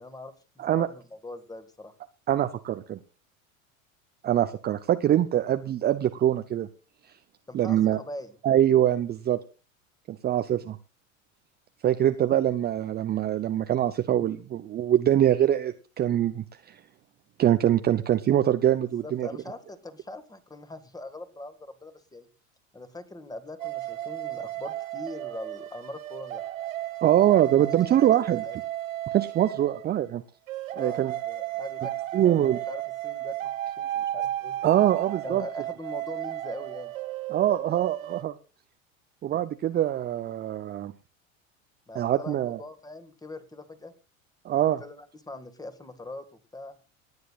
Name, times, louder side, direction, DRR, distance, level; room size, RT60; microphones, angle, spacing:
voice 1, 0.0-1.9 7.5-8.3 18.8-22.3 22.7-26.4 27.8-28.2 28.4-28.6 30.7-34.6 35.2-36.9 41.9-43.9 44.5-46.2 46.5-46.8, left 2 dB, 10° left, 10 dB, 1.8 m, -42 dB
voice 2, 2.3-3.0 4.2-6.7 7.5-8.0 8.4-9.4 10.1-10.8 11.8-16.8 17.4-19.3 27.0-28.4 29.1-30.2 30.8-31.1 32.1-32.6 34.6-35.4 37.3-38.3 39.2-40.9 41.9-42.6 44.4-44.8, right 11 dB, 25° right, 9 dB, 0.6 m, -23 dB
sound 1, 23.6-29.9 30.5-38.2, right 13 dB, 70° right, 1.3 m, -34 dB
28.0 x 9.5 x 2.4 m, 0.33 s
figure-of-eight pair, 85°, 41 cm